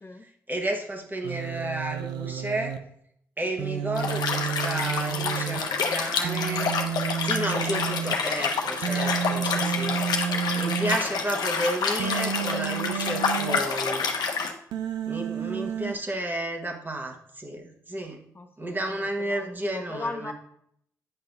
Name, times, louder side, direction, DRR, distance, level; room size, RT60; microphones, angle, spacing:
voice 1, 0.2-2.8 3.4-6.7 7.2-10.0 10.6-14.1 15.1-18.2 18.6-20.3, right 1 dB, 25° right, 2 dB, 1.4 m, -32 dB
Human voice, 1.2-2.8 3.6-5.6 6.2-8.1 8.8-11.0 12.0-13.6 14.7-15.9, right 8 dB, 80° right, 0.5 m, -30 dB
Liquid, 3.9-14.5, left 5 dB, 70° left, 0.9 m, -28 dB
voice 2, 9.9-10.7 15.5-15.7 18.3-20.3, left 3 dB, 30° left, 5 dB, 0.7 m, -39 dB
8.9 x 5.6 x 2.6 m, 0.69 s
hypercardioid pair, 45°, 7 cm